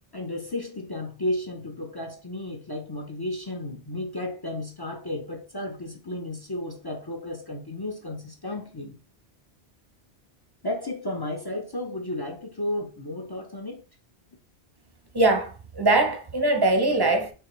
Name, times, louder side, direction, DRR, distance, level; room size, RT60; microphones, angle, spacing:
voice 1, 0.1-9.0 10.6-13.8, left 1 dB, 30° left, 0.4 m, -33 dB
voice 2, 15.1-17.3, right 2 dB, 25° right, 0.6 m, -22 dB
4.7 x 3.3 x 3.0 m
omnidirectional pair, 1.1 m